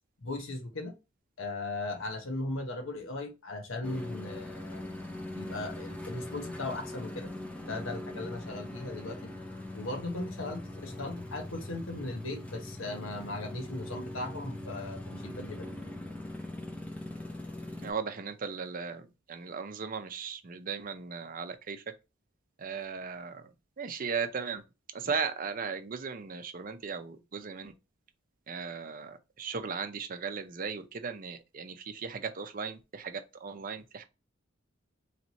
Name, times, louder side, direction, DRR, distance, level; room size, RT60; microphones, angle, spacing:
voice 1, 0.2-0.9 1.4-4.8 5.3-7.3 7.6-9.3 9.7-15.7, left 2 dB, 85° left, 1.0 m, -38 dB
sound 1, 3.8-17.9, left 1 dB, 5° left, 0.6 m, -41 dB
voice 2, 17.8-21.8 22.6-23.4 23.8-24.6 24.9-27.7 28.5-34.0, right 5 dB, 45° right, 0.5 m, -37 dB
3.2 x 3.0 x 4.0 m
head